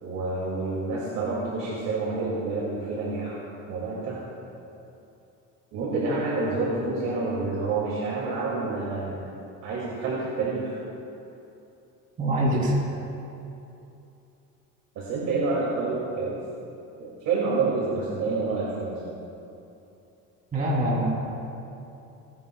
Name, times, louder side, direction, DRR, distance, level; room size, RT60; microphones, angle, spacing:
voice 1, 0.0-3.4 3.7-4.2 5.7-9.3 9.6-10.8 14.9-16.4 17.0-19.0, right 3 dB, 55° right, -6 dB, 2.6 m, -28 dB
voice 2, 12.2-12.7 20.5-21.2, right 1 dB, 25° right, -5 dB, 3.3 m, -24 dB
30.0 x 11.0 x 2.4 m, 2.8 s
cardioid pair, 165°, 33 cm